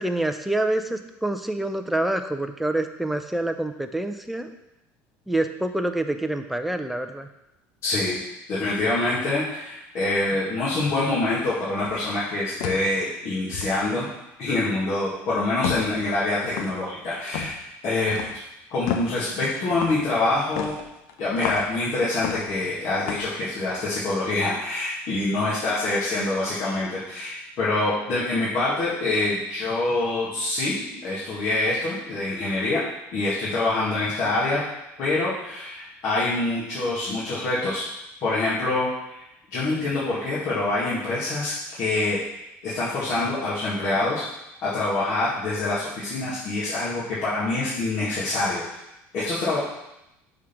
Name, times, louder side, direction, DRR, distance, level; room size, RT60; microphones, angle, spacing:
voice 1, 0.0-4.5 5.3-7.3, right 1 dB, ahead, 7 dB, 0.5 m, -26 dB
voice 2, 7.8-8.2 8.5-14.1 14.4-17.6 17.8-18.4 18.7-20.7 21.2-32.8 33.1-34.6 35.0-37.8 38.2-39.2 39.5-42.2 42.6-44.2 44.6-48.6 49.1-49.6, left 2 dB, 55° left, -9 dB, 1.9 m, -25 dB
sound 1, 11.8-12.1 12.6-12.9 13.5-13.8 15.6-16.0 16.4-16.8 17.3-17.6 18.1-18.4 18.9-19.2 19.7-20.0 20.6-21.7 22.2-22.7 23.0-23.3, left 8 dB, 85° left, 0.7 m, -31 dB
6.3 x 3.6 x 5.8 m, 0.88 s
cardioid pair, 120°, 6 cm